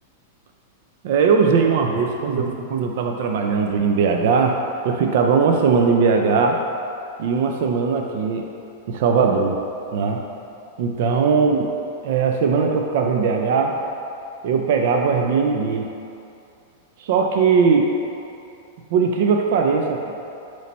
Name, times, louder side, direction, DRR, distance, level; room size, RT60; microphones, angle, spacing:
voice 1, 1.0-6.6 7.2-8.5 8.9-9.6 9.9-10.2 10.8-11.6 12.0-13.8 14.4-15.9 17.0-17.9 18.9-20.5, right 5 dB, 60° right, 2 dB, 0.5 m, -19 dB
8.2 x 3.2 x 4.1 m, 2.7 s
supercardioid pair, 145°, 0 cm